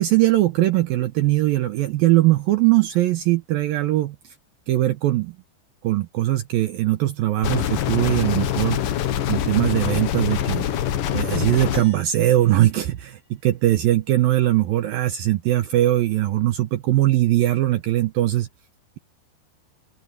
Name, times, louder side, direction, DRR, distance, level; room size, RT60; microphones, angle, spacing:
voice 1, 0.0-4.2 4.7-5.3 5.8-8.8 9.3-10.7 11.1-18.5, right 15 dB, 75° right, 2.2 m, -20 dB
sound 1, 7.4-11.8, left 10 dB, 65° left, 2.5 m, -24 dB
sound 2, 11.7-14.2, right 1 dB, 15° left, 7.8 m, -52 dB
open air
omnidirectional pair, 5.1 m